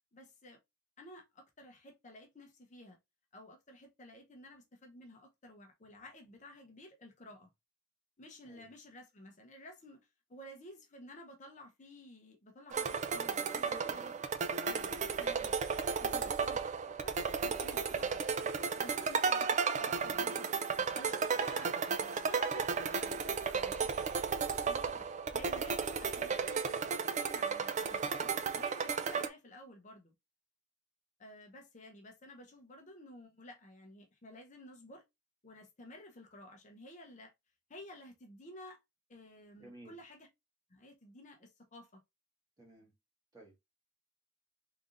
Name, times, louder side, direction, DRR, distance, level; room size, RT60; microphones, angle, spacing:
voice 1, 0.1-0.6 1.0-3.0 3.3-7.5 8.2-14.1 14.7-15.5 16.0-18.2 18.8-20.6 20.9-21.7 22.1-25.1 25.3-30.1 31.2-35.0 35.4-37.3 37.7-38.8 39.1-40.3 40.7-42.0, left 1 dB, 35° left, 0.8 m, -53 dB
sound 1, 12.7-29.3, right 5 dB, 35° right, 0.4 m, -34 dB
voice 2, 13.6-14.2 39.6-40.0 42.6-42.9 43.3-43.6, right 1 dB, 20° right, 1.7 m, -53 dB
3.7 x 3.3 x 2.5 m
head